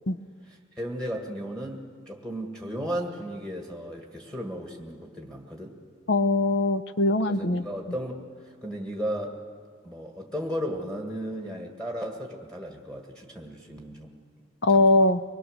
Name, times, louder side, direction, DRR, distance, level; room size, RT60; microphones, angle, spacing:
voice 1, 0.8-5.8 7.3-9.4 9.8-14.1 14.7-14.9, equal, 5° left, 1 dB, 1.7 m, -35 dB
voice 2, 6.1-7.6 14.6-15.2, left 2 dB, 65° left, 13 dB, 0.7 m, -21 dB
24.5 x 20.5 x 6.5 m, 2.1 s
head